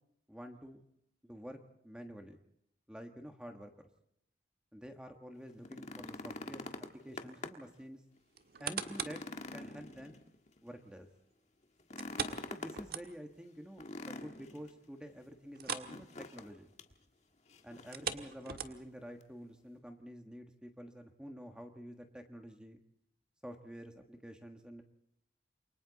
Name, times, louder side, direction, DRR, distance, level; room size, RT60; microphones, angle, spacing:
voice 1, 0.3-0.8 1.2-2.4 2.9-3.9 4.7-8.0 8.6-9.2 9.5-10.2 10.6-11.1 12.5-16.7 17.6-22.8 23.4-24.8, equal, 5° right, 4 dB, 1.5 m, -49 dB
sound 1, 5.5-7.8 8.2-8.3 8.7-10.6 11.8-12.9 13.8-14.7 15.9-16.5 16.8-16.9 17.5-18.1 19.2-19.3, left 2 dB, 40° left, 1.6 m, -45 dB
sound 2, 8.3-9.3 9.8-9.9 12.0-13.4 13.8-13.9 14.3-14.4 15.5-16.0 16.2-16.5 17.8-19.0 19.7-19.8, right 6 dB, 55° right, 1.6 m, -40 dB
29.0 x 24.0 x 4.1 m, 0.73 s
head